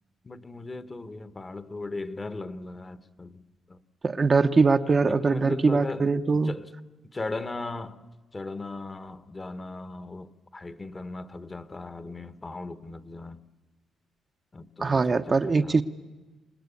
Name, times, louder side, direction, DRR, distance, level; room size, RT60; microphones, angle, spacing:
voice 1, 0.2-3.4 3.7-3.8 5.1-6.7 7.1-13.4 14.5-15.8, left 2 dB, 25° left, 1.2 m, -38 dB
voice 2, 4.0-6.5 14.8-15.8, right 4 dB, 35° right, 0.8 m, -22 dB
27.0 x 19.0 x 8.5 m
cardioid pair, 90°, 0 cm